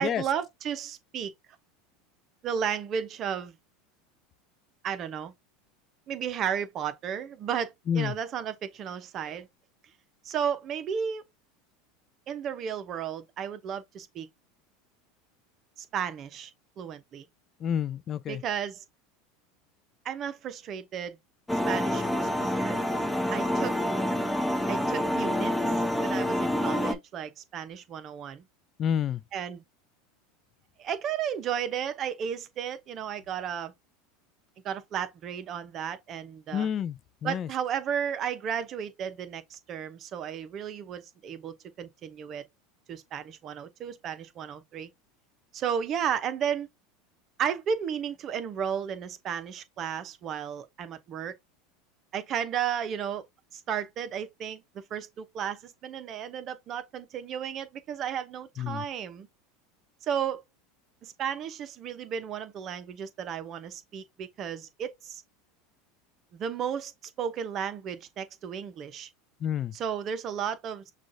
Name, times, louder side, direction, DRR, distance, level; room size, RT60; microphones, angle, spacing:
voice 1, 0.0-1.3 2.4-3.5 4.8-5.3 6.1-9.5 10.2-11.2 12.3-14.3 15.8-16.5 16.8-17.2 18.3-18.8 20.0-21.2 21.7-22.8 23.3-23.9 24.7-28.4 29.3-29.6 30.8-33.7 34.6-36.7 37.2-42.5 42.9-44.9 45.5-46.7 47.4-51.3 52.1-53.2 53.5-59.3 60.0-60.4 61.0-65.2 66.3-69.1 69.7-70.9, right 8 dB, 45° right, 0.7 m, -33 dB
voice 2, 17.6-18.4 28.8-29.2 36.5-37.0 37.2-37.5 58.6-58.8 69.4-69.7, left 8 dB, 40° left, 0.4 m, -29 dB
sound 1, 21.5-26.9, left 1 dB, 5° left, 0.8 m, -27 dB
6.1 x 2.4 x 2.6 m
hypercardioid pair, 95°, 0 cm